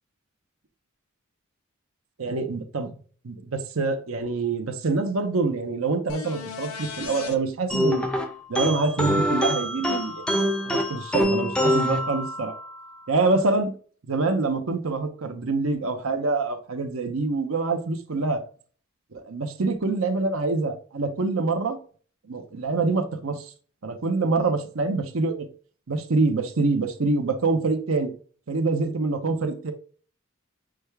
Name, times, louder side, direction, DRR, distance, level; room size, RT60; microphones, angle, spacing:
voice 1, 2.2-2.9 3.2-8.1 8.5-10.2 10.7-12.5 13.1-13.8 14.1-18.4 19.1-21.8 22.3-23.5 23.8-25.5 25.9-28.1 28.5-29.7, right 3 dB, 70° right, 0.8 m, -25 dB
sound 1, 6.1-7.4 11.2-11.3, left 5 dB, 80° left, 0.7 m, -36 dB
sound 2, 7.7-12.8, equal, 5° left, 0.5 m, -25 dB
6.2 x 2.3 x 3.3 m
head